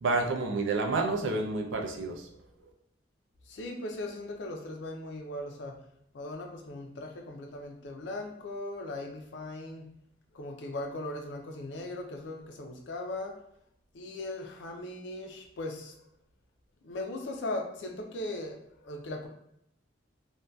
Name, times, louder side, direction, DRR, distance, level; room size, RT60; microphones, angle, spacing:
voice 1, 0.0-2.3, right 3 dB, 85° right, 2 dB, 0.4 m, -29 dB
voice 2, 3.5-5.8 6.1-9.9 10.3-13.3 13.9-16.0 16.8-19.3, left 2 dB, 70° left, 3 dB, 0.4 m, -38 dB
2.6 x 2.2 x 2.2 m, 0.74 s
head